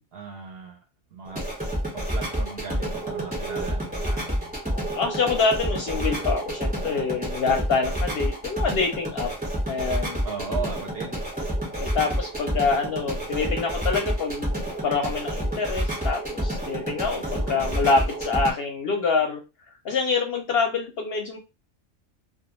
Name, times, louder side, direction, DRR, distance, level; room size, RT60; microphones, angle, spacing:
voice 1, 0.1-0.8 1.1-1.4 1.9-4.5 10.2-11.2 11.9-12.1 17.3-17.7, right 5 dB, 60° right, 1 dB, 0.7 m, -37 dB
sound 1, 1.3-18.5, right 1 dB, 10° right, 1.0 m, -29 dB
voice 2, 4.9-9.3 9.7-10.2 11.8-19.4 19.8-21.4, left 4 dB, 60° left, 3 dB, 0.7 m, -26 dB
2.3 x 2.2 x 2.9 m, 0.27 s
omnidirectional pair, 1.3 m